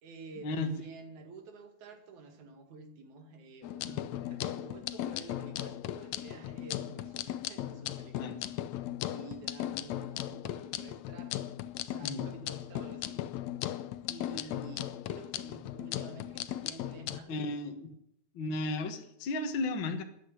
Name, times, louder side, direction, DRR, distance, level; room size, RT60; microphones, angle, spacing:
voice 1, 0.0-8.5 9.1-11.3 11.8-13.2 14.0-17.4, right 3 dB, 60° right, 7 dB, 3.2 m, -50 dB
sound 1, 3.6-17.2, left 13 dB, 85° left, 1.6 m, -37 dB
voice 2, 17.3-17.9 18.3-20.0, left 2 dB, 50° left, 6 dB, 1.6 m, -34 dB
14.0 x 10.0 x 9.9 m, 0.74 s
omnidirectional pair, 4.0 m